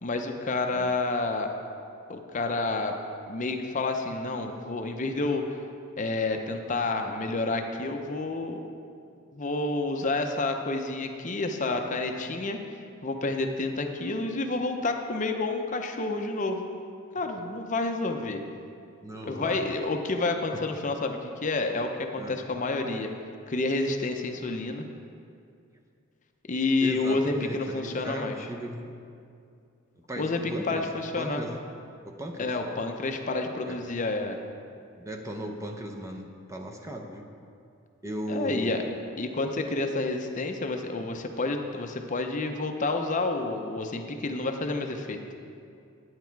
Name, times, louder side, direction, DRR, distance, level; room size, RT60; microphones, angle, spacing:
voice 1, 0.0-1.5 2.1-3.0 3.3-5.6 6.0-8.6 9.3-16.6 17.1-18.4 19.3-23.1 23.5-24.9 26.5-28.4 30.2-31.4 32.4-34.4 38.3-38.8 39.2-45.2, left 2 dB, 35° left, 5 dB, 0.6 m, -29 dB
voice 2, 19.0-19.7 20.5-20.6 22.2-22.4 26.8-28.9 30.0-30.8 31.2-31.6 32.0-32.5 33.6-33.8 35.0-37.3 38.0-38.9, equal, 15° right, 2 dB, 0.6 m, -37 dB
9.5 x 9.3 x 4.5 m, 2.4 s
head